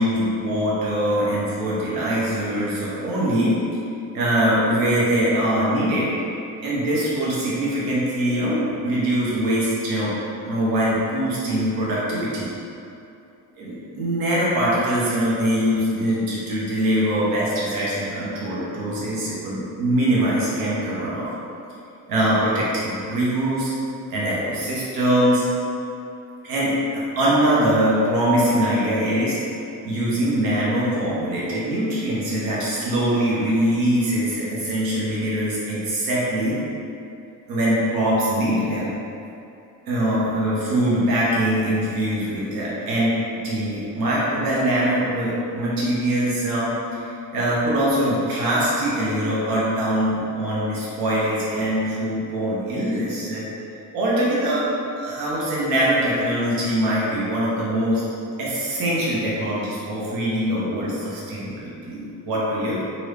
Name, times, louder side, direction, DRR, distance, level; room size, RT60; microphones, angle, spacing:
voice 1, 0.0-3.6 4.1-6.1 6.6-10.1 10.4-12.5 13.6-21.3 22.1-23.7 24.1-25.4 26.4-29.4 29.8-36.6 37.5-38.9 39.9-46.7 46.9-53.4 53.9-58.0 58.4-62.8, right 1 dB, 85° right, -7 dB, 1.0 m, -22 dB
3.0 x 2.6 x 3.4 m, 2.7 s
cardioid pair, 145°, 34 cm